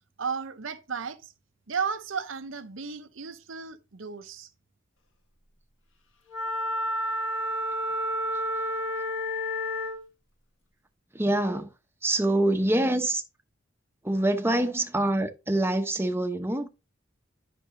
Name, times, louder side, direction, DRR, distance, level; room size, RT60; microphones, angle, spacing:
voice 1, 0.2-1.3 1.7-4.5, right 6 dB, 75° right, 0.8 m, -34 dB
Wind instrument woodwind instrument, 6.3-10.0, equal, 75° left, 1.5 m, -30 dB
voice 2, 11.1-11.7 12.0-13.2 14.0-16.8, right 1 dB, 10° right, 0.9 m, -25 dB
10.0 x 6.1 x 2.7 m
head